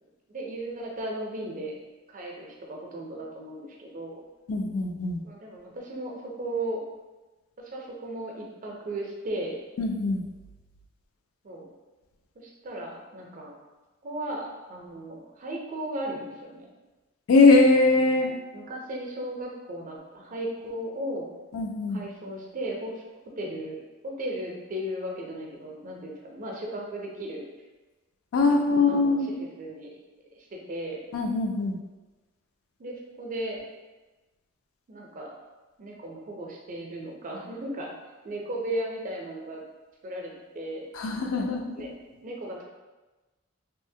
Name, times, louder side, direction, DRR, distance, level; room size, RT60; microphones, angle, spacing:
voice 1, 0.3-1.8 2.1-4.2 5.2-6.8 7.6-9.6 11.4-11.7 12.4-13.5 14.0-16.7 18.2-21.2 21.9-23.0 23.4-27.4 28.5-28.6 28.9-29.9 30.3-31.1 32.8-33.6 34.9-35.3 35.8-37.9 38.2-39.6 40.0-40.9 41.8-41.9 42.2-42.6, right 1 dB, 40° right, -1 dB, 0.5 m, -36 dB
voice 2, 4.5-5.2 9.8-10.2 17.3-18.3 21.5-22.0 28.3-29.3 31.1-31.8 40.9-41.9, left 3 dB, 80° left, 3 dB, 0.4 m, -22 dB
2.7 x 2.0 x 2.6 m, 1.2 s
head